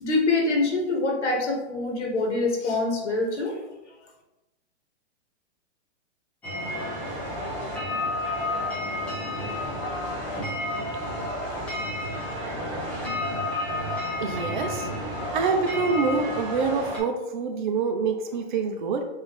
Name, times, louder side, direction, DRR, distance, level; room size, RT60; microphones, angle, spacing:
voice 1, 0.0-3.6, left 3 dB, 90° left, 0 dB, 1.5 m, -25 dB
sound 1, 6.4-17.0, left 1 dB, 5° left, 0.4 m, -31 dB
voice 2, 14.2-14.9 15.3-19.0, right 5 dB, 45° right, 5 dB, 0.7 m, -26 dB
5.4 x 2.7 x 3.5 m, 0.98 s
hypercardioid pair, 160°, 34 cm